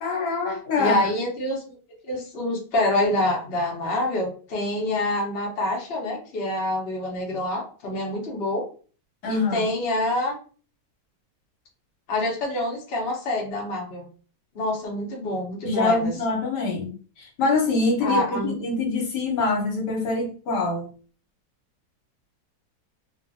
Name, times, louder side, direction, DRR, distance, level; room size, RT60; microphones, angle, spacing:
voice 1, 0.0-1.0 9.2-9.6 15.6-20.9, left 3 dB, 70° left, 0 dB, 1.4 m, -25 dB
voice 2, 0.8-1.7 2.1-8.6 9.3-10.3 12.1-14.0 14.5-16.1 18.0-18.6, left 1 dB, 45° left, -2 dB, 0.9 m, -26 dB
2.7 x 2.5 x 2.5 m, 0.39 s
omnidirectional pair, 1.9 m